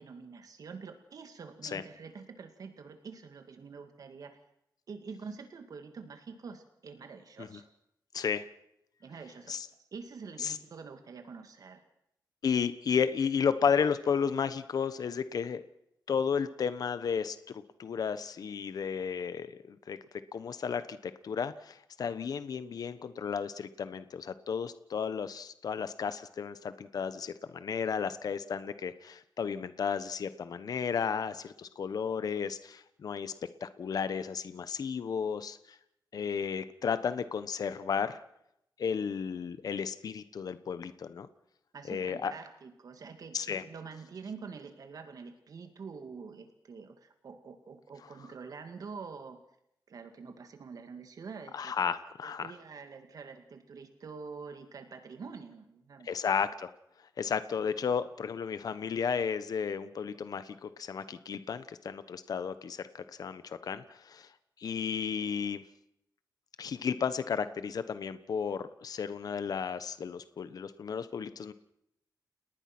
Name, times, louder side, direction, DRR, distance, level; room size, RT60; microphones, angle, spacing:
voice 1, 0.0-4.4 4.9-7.7 9.0-11.8 41.7-49.4 49.9-51.7 52.2-56.2, right 5 dB, 55° right, 7 dB, 2.2 m, -46 dB
voice 2, 8.1-8.5 9.5-9.7 10.4-10.6 12.4-15.6 16.1-20.0 20.3-33.3 33.6-35.8 36.1-38.2 38.8-41.3 41.9-42.3 43.3-43.6 51.5-52.5 56.0-56.7 57.2-64.3 64.6-65.6 66.6-71.5, left 6 dB, 60° left, 12 dB, 1.2 m, -33 dB
30.0 x 19.0 x 6.1 m, 0.77 s
wide cardioid pair, 170°, 7 cm